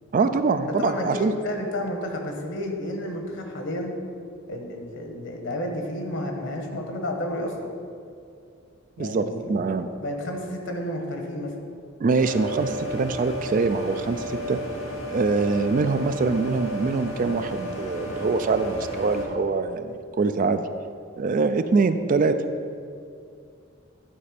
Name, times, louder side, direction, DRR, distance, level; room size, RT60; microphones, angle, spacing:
voice 1, 0.1-1.3 9.0-9.9 12.0-14.6 15.1-20.7 21.2-22.4, right 4 dB, 40° right, 10 dB, 0.3 m, -24 dB
voice 2, 0.6-3.9 4.5-7.5 9.0-9.4 9.7-11.6, left 1 dB, 65° left, 2 dB, 1.1 m, -31 dB
sound 1, 12.1-19.3, equal, 85° left, 1.9 m, -33 dB
11.0 x 4.2 x 5.1 m, 2.3 s
head